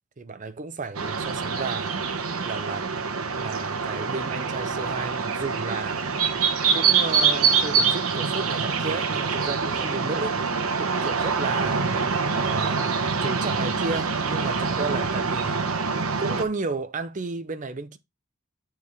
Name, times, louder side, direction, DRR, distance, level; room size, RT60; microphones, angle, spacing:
voice 1, 0.2-2.0 2.4-2.9 3.3-6.0 6.7-10.4 10.8-11.9 12.3-12.9 13.2-15.7 16.2-18.0, right 3 dB, 35° right, 0.6 m, -33 dB
sound 1, 0.9-16.4, right 5 dB, 85° right, 1.1 m, -25 dB
7.9 x 4.6 x 3.4 m
head